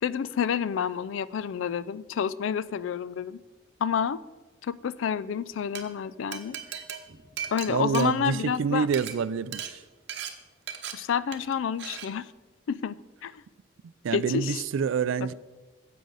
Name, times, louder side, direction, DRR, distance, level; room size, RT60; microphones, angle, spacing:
voice 1, 0.0-3.4 3.8-4.2 4.6-6.8 7.5-8.9 10.9-12.3 12.7-12.9 13.2-13.4 14.1-14.6, left 7 dB, 70° left, 0.3 m, -29 dB
Glass, 5.5-5.8 6.3-8.6 8.9-9.1 9.5-9.7 10.1-10.3 10.7-10.9 11.3-11.5 11.8-12.1, right 9 dB, 60° right, 0.9 m, -37 dB
voice 2, 7.7-9.8 13.8-15.3, right 6 dB, 75° right, 0.3 m, -27 dB
10.0 x 7.6 x 3.9 m
head